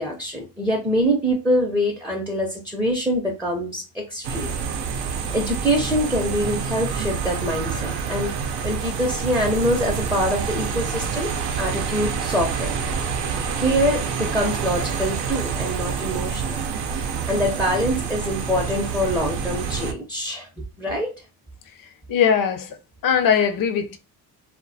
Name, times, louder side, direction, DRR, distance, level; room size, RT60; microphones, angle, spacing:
voice 1, 0.0-4.5 5.0-12.8 13.6-16.6 17.3-21.1, equal, 5° right, 0.5 m, -25 dB
sound 1, 4.2-19.9, right 6 dB, 75° right, 0.6 m, -27 dB
voice 2, 22.1-22.7 23.0-24.0, left 7 dB, 55° left, 0.6 m, -20 dB
2.2 x 2.1 x 2.6 m
cardioid pair, 85°, 40 cm